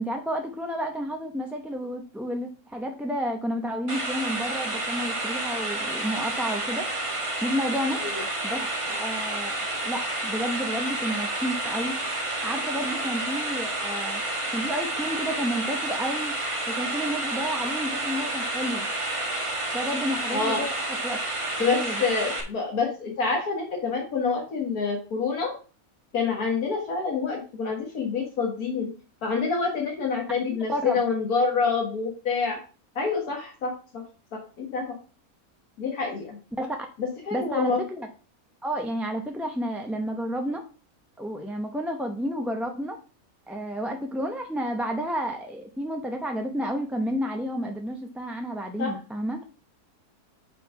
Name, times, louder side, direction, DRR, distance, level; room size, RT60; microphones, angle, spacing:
voice 1, 0.0-6.9 7.4-8.0 8.4-12.0 12.4-14.2 14.5-16.3 16.7-18.9 19.7-20.7 21.0-21.2 21.7-22.0 30.4-31.0 36.6-36.8 37.3-38.1 38.6-40.6 41.2-43.0 43.5-49.4, equal, ahead, 3 dB, 0.5 m, -31 dB
sound 1, 3.9-22.4, right 2 dB, 20° right, 1.2 m, -30 dB
voice 2, 20.3-20.6 21.6-25.5 26.1-28.9 29.2-32.6 33.0-34.0 34.3-34.9 35.8-36.4 37.0-37.8 48.8-48.9, left 4 dB, 85° left, 0 dB, 1.9 m, -27 dB
5.7 x 4.4 x 5.7 m, 0.36 s
omnidirectional pair, 1.5 m